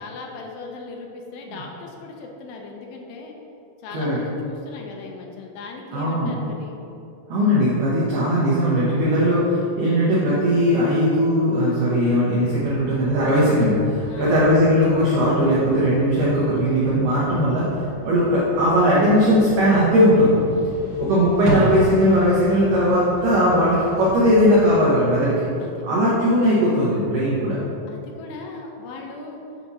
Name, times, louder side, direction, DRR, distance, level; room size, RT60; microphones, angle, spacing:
voice 1, 0.0-3.3 3.8-6.8 14.0-14.4 20.7-21.1 25.6-25.9 27.9-29.4, left 4 dB, 80° left, 1 dB, 2.7 m, -38 dB
voice 2, 5.9-6.3 7.3-17.6 18.0-20.4 21.0-25.4 25.8-27.6, equal, 80° right, -7 dB, 1.8 m, -18 dB
sound 1, 12.4-24.7, right 1 dB, 65° right, 2.0 m, -34 dB
7.6 x 2.7 x 5.9 m, 2.7 s
omnidirectional pair, 5.1 m